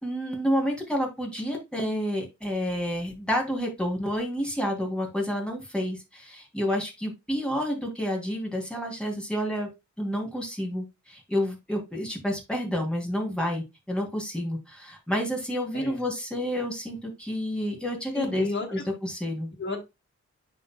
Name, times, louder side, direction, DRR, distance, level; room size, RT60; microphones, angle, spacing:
voice 1, 0.0-18.5 18.7-19.5, equal, 5° left, -1 dB, 3.3 m, -29 dB
voice 2, 15.7-16.1 18.1-18.8 19.6-19.8, left 3 dB, 40° left, 1 dB, 2.1 m, -32 dB
11.0 x 3.9 x 2.3 m, 0.22 s
cardioid pair, 70°, 29 cm